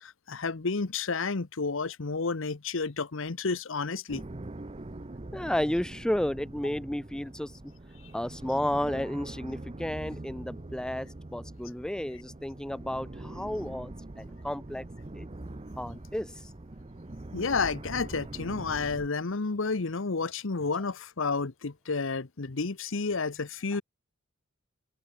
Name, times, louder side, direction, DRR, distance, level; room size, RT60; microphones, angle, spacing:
voice 1, 0.0-4.2 17.3-23.8, left 4 dB, 70° left, 1.0 m, -31 dB
sound 1, 4.1-19.1, right 2 dB, 30° right, 0.8 m, -43 dB
voice 2, 5.3-7.5 8.1-13.9 14.2-14.8 15.2-15.3 15.8-16.3, left 1 dB, 5° left, 0.3 m, -32 dB
head